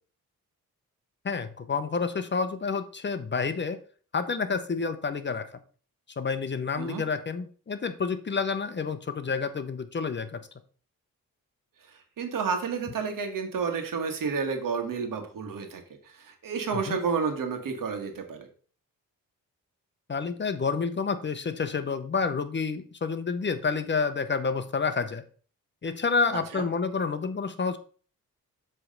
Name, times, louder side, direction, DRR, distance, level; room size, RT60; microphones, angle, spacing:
voice 1, 1.2-3.8 4.1-5.5 6.2-10.4 16.7-17.0 20.1-25.2 25.8-27.8, left 5 dB, 35° left, 11 dB, 0.7 m, -29 dB
voice 2, 12.2-15.8 16.2-18.5 26.5-26.7, right 5 dB, 75° right, 5 dB, 1.4 m, -30 dB
7.4 x 3.3 x 5.2 m, 0.42 s
cardioid pair, 85°, 33 cm